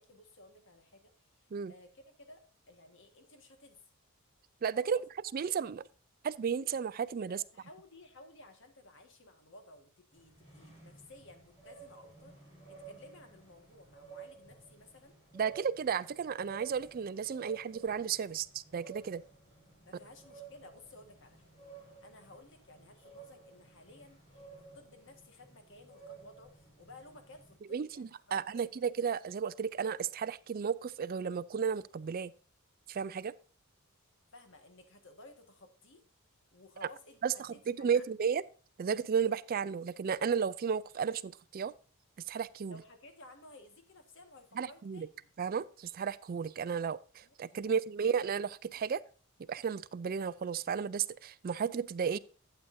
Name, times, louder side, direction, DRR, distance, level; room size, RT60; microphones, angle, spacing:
voice 1, 0.0-3.8 4.8-5.0 7.3-12.4 12.7-15.1 19.8-21.5 21.8-24.5 24.7-28.9 34.3-36.0 36.5-38.0 42.7-45.3 47.2-47.8, left 2 dB, 55° left, 1.7 m, -56 dB
voice 2, 4.6-5.0 5.3-5.8 6.2-7.4 15.3-19.2 27.7-32.3 32.9-33.3 37.2-38.4 38.8-41.7 42.3-42.8 44.6-45.1 45.4-49.0 49.5-52.2, right 7 dB, 40° right, 0.3 m, -33 dB
sound 1, 10.1-27.6, right 5 dB, 30° left, 4.1 m, -55 dB
12.0 x 8.6 x 2.7 m
head